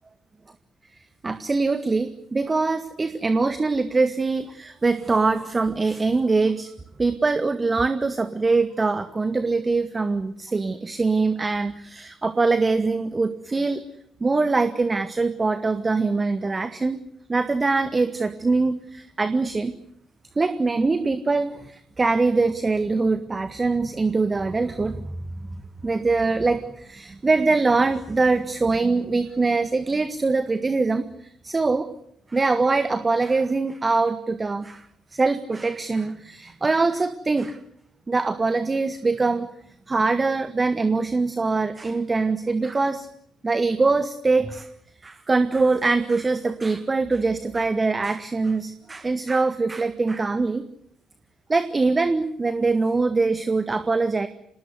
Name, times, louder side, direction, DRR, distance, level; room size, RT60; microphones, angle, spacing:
voice 1, 1.2-6.7 7.0-13.8 14.2-17.0 17.3-19.7 20.4-25.1 25.8-31.9 32.3-34.9 35.1-37.6 38.1-39.5 39.9-43.1 43.4-44.7 45.0-50.6 51.5-54.3, right 3 dB, 25° right, 11 dB, 1.7 m, -23 dB
27.5 x 20.0 x 8.0 m, 0.70 s
figure-of-eight pair, 45°, 0 cm